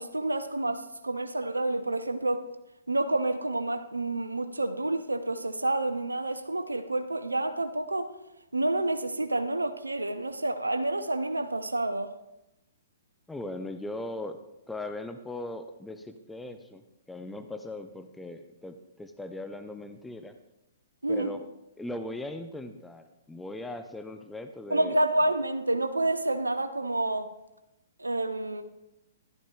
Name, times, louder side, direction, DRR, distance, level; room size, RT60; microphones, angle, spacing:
voice 1, 0.0-2.4 2.9-8.1 8.5-12.1 21.0-21.3 24.7-27.3 28.0-28.6, right 2 dB, 90° right, 9 dB, 0.6 m, -29 dB
voice 2, 13.3-14.4 14.7-20.4 21.1-21.5 21.8-25.0, left 2 dB, 5° left, 7 dB, 0.5 m, -39 dB
14.0 x 12.0 x 2.4 m, 0.91 s
figure-of-eight pair, 120°, 0 cm